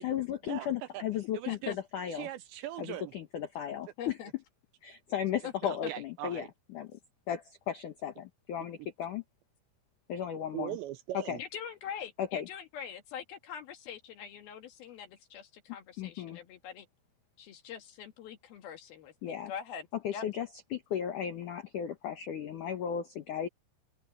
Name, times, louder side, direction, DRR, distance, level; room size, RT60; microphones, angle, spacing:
voice 1, 0.0-2.3 2.8-4.2 4.8-7.0 7.3-9.2 10.1-10.8 11.3-11.4 12.2-12.5 16.0-16.4 19.2-19.5 20.0-23.5, left 9 dB, 85° left, 1.8 m, -35 dB
voice 2, 1.3-1.7 2.1-3.1 5.9-6.5 10.5-11.4, right 14 dB, 85° right, 2.6 m, -39 dB
voice 3, 4.0-4.3 5.4-5.7 11.4-16.9 17.4-19.9 20.1-20.2, left 8 dB, 60° left, 3.0 m, -43 dB
open air
omnidirectional pair, 5.7 m